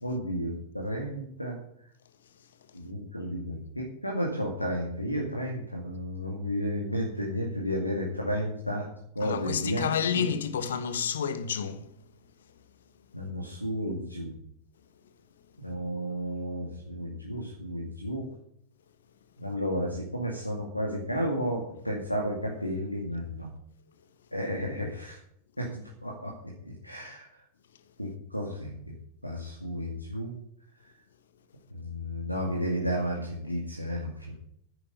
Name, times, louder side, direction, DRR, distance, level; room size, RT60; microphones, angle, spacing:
voice 1, 0.0-1.6 2.7-8.9 9.1-9.9 10.1-10.3 13.1-14.3 15.6-18.2 19.4-23.5 24.3-25.2 25.6-26.5 26.8-27.3 28.0-28.7 29.2-30.3 31.7-34.3, equal, 90° left, 2.2 m, -32 dB
voice 2, 9.2-11.9, left 7 dB, 65° left, 1.2 m, -30 dB
10.5 x 9.3 x 6.9 m
figure-of-eight pair, 90°, 0 cm